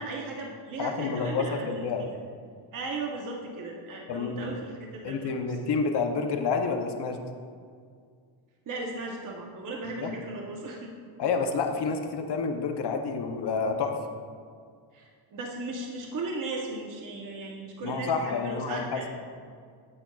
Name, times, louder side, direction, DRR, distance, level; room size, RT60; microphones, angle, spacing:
voice 1, 0.0-2.2 2.7-5.5 8.7-10.9 14.9-19.1, right 2 dB, 40° right, 0 dB, 0.8 m, -36 dB
voice 2, 0.8-2.1 4.1-4.5 5.0-7.2 10.0-10.1 11.2-14.0 17.8-19.0, left 5 dB, 55° left, 5 dB, 0.7 m, -29 dB
8.6 x 8.5 x 2.3 m, 2.1 s
wide cardioid pair, 155°, 50 cm